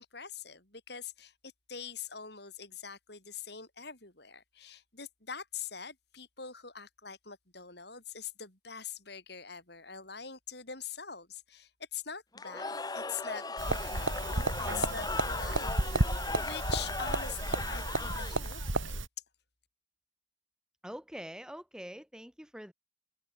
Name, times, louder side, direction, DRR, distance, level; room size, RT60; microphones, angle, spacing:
voice 1, 0.0-1.3 1.7-19.0, left 7 dB, 55° left, 7.7 m, -44 dB
Cheering / Crowd, 12.3-18.7, left 3 dB, 20° left, 1.0 m, -38 dB
sound 1, 13.6-19.1, right 2 dB, 85° right, 3.0 m, -32 dB
voice 2, 20.8-22.7, equal, 5° right, 7.8 m, -44 dB
head